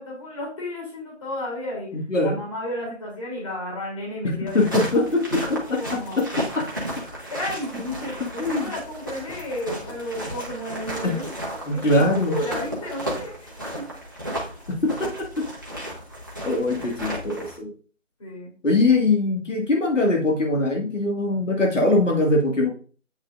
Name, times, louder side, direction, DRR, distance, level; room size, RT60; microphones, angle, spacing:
voice 1, 0.0-1.9 2.2-5.0 5.6-6.2 7.3-11.2 11.7-13.4 13.8-13.9 16.6-16.8 18.2-18.5, left 1 dB, 25° left, -4 dB, 3.2 m, -33 dB
voice 2, 1.9-2.4 4.2-6.6 8.4-8.7 11.0-11.2 11.7-12.4 14.7-15.5 16.4-17.7 18.6-22.7, left 2 dB, 70° left, 0 dB, 2.1 m, -22 dB
sound 1, 4.5-17.6, equal, 15° right, 0.9 m, -33 dB
8.5 x 6.3 x 2.5 m, 0.40 s
figure-of-eight pair, 170°, 39 cm